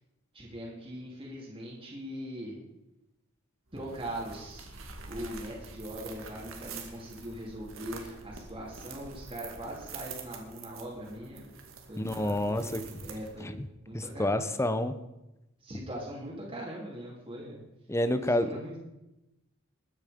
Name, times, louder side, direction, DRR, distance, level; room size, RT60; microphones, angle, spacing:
voice 1, 0.3-2.6 3.7-4.6 5.1-11.6 11.9-13.5 13.8-14.5 15.6-17.6 18.1-18.8, right 1 dB, 25° right, -5 dB, 3.0 m, -41 dB
sound 1, 3.7-13.6, right 4 dB, 75° right, 2.2 m, -46 dB
voice 2, 12.0-12.8 13.4-13.7 13.9-14.9 17.9-18.6, left 1 dB, 15° left, 11 dB, 0.8 m, -29 dB
21.0 x 9.5 x 5.2 m, 0.95 s
head